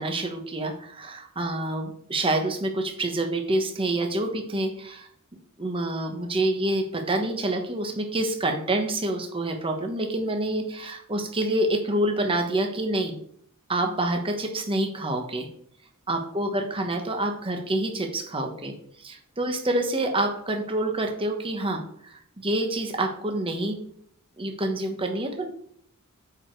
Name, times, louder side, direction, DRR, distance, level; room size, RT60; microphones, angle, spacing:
voice 1, 0.0-5.1 5.6-13.2 13.7-15.5 16.1-18.7 19.0-23.8 24.4-25.5, right 1 dB, 25° right, 4 dB, 1.1 m, -27 dB
8.6 x 4.9 x 4.6 m, 0.65 s
head